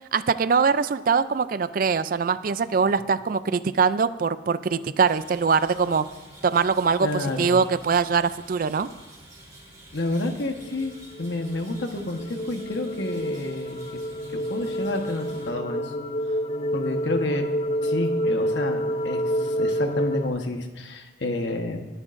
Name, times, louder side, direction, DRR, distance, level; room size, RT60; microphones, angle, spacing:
voice 1, 0.1-6.1 6.4-8.9, right 5 dB, 45° right, 14 dB, 0.4 m, -22 dB
sound 1, 5.0-15.5, right 1 dB, 20° right, 3.6 m, -49 dB
voice 2, 7.0-7.6 9.9-10.9 11.2-13.8 14.3-15.9 16.7-17.5 17.8-21.9, left 2 dB, 65° left, 5 dB, 1.2 m, -29 dB
sound 2, 10.7-20.3, equal, 30° left, 0.3 m, -28 dB
20.5 x 9.9 x 2.6 m, 1.2 s
head